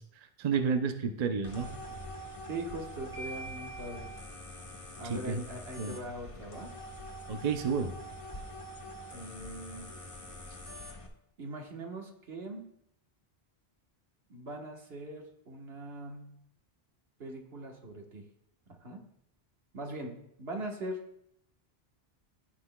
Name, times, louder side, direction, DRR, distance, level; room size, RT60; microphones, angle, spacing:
voice 1, 0.4-1.8 5.0-5.4 5.8-6.0 7.3-8.0, right 6 dB, 45° right, 7 dB, 0.6 m, -31 dB
sound 1, 1.4-11.1, equal, 35° left, 0.9 m, -45 dB
voice 2, 2.4-4.1 5.0-6.7 9.1-9.9 11.4-12.6 14.3-16.4 17.2-18.2 18.8-19.0 19.7-21.0, right 1 dB, 70° right, 2 dB, 1.5 m, -41 dB
sound 2, 3.1-5.2, right 1 dB, 65° left, 2.5 m, -47 dB
15.0 x 6.0 x 2.2 m, 0.75 s
omnidirectional pair, 1.1 m